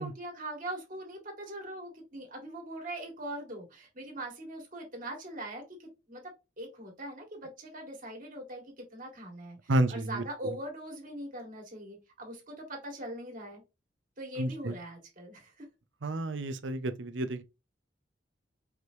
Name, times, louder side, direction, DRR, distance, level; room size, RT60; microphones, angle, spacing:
voice 1, 0.0-6.2 6.6-13.6 14.2-15.7, right 1 dB, 45° right, 2.0 m, -41 dB
voice 2, 9.7-10.6 14.4-14.8 16.0-17.4, right 1 dB, 80° right, 0.6 m, -31 dB
4.9 x 3.1 x 2.7 m
head